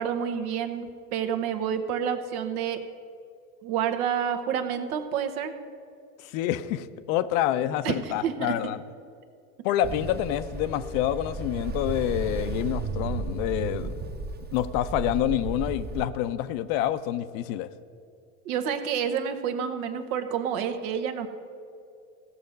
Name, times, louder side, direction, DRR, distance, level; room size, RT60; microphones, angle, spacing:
voice 1, 0.0-2.8 3.6-5.5 7.8-8.7 18.4-21.3, right 8 dB, 75° right, 7 dB, 1.2 m, -29 dB
voice 2, 6.2-8.8 9.6-13.9 14.5-17.7, left 12 dB, 65° left, 13 dB, 0.7 m, -27 dB
Ocean, 9.8-16.1, right 4 dB, 20° right, 0.9 m, -34 dB
16.0 x 6.5 x 5.2 m, 2.5 s
hypercardioid pair, 95°, 44 cm